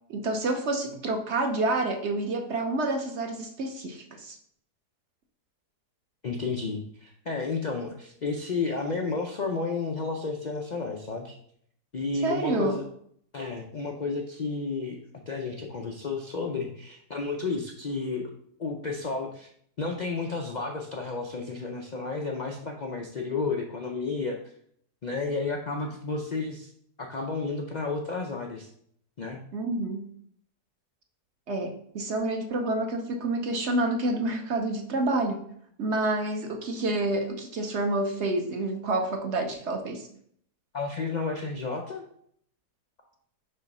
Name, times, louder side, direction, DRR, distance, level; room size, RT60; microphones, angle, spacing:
voice 1, 0.1-4.4 12.2-12.8 29.5-30.1 31.5-35.4 35.8-40.1, right 2 dB, 55° right, 4 dB, 0.9 m, -28 dB
voice 2, 6.2-11.3 11.9-12.8 13.3-18.3 18.6-19.5 19.8-24.5 25.0-26.7 27.0-28.7 29.2-29.4 40.7-42.0, left 4 dB, 90° left, 1 dB, 0.3 m, -32 dB
5.5 x 3.9 x 5.4 m, 0.65 s
omnidirectional pair, 1.7 m